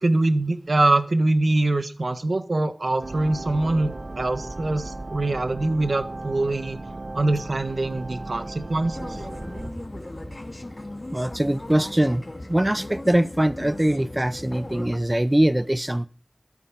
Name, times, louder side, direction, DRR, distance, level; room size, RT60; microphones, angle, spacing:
voice 1, 0.0-6.8 7.1-9.2, right 2 dB, 85° right, 1.4 m, -23 dB
sound 1, 3.0-9.7, right 2 dB, 70° right, 1.2 m, -36 dB
sound 2, 8.9-15.0, left 1 dB, 45° left, 2.0 m, -37 dB
voice 2, 11.1-12.2 12.5-16.1, right 1 dB, 25° right, 0.7 m, -22 dB
12.5 x 8.8 x 7.4 m
wide cardioid pair, 50°, 0 cm